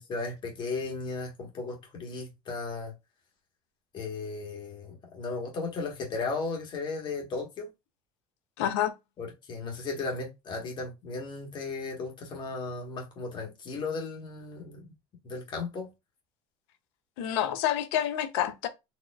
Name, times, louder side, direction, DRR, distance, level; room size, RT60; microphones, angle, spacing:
voice 1, 0.1-2.9 3.9-7.7 9.2-14.9 15.2-15.9, left 3 dB, 35° left, 1.4 m, -35 dB
voice 2, 8.6-8.9 17.2-18.7, left 11 dB, 80° left, 0.8 m, -28 dB
4.2 x 2.9 x 2.4 m
cardioid pair, 145°, 14 cm